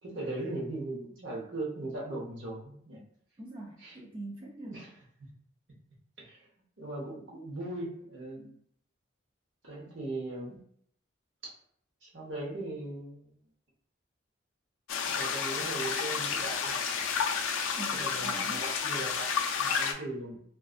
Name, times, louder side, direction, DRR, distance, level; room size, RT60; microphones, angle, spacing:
voice 1, 0.0-3.0 3.8-4.0 4.6-4.9 5.2-5.3 6.2-6.4 6.8-8.5 9.6-10.6 12.0-13.3 15.1-17.0 18.0-20.4, right 2 dB, 65° right, -4 dB, 0.9 m, -39 dB
voice 2, 3.4-4.7 17.8-18.7, right 2 dB, 25° right, -3 dB, 0.4 m, -43 dB
sound 1, 14.9-19.9, left 6 dB, 90° left, 0.3 m, -31 dB
2.6 x 2.3 x 2.4 m, 0.65 s
head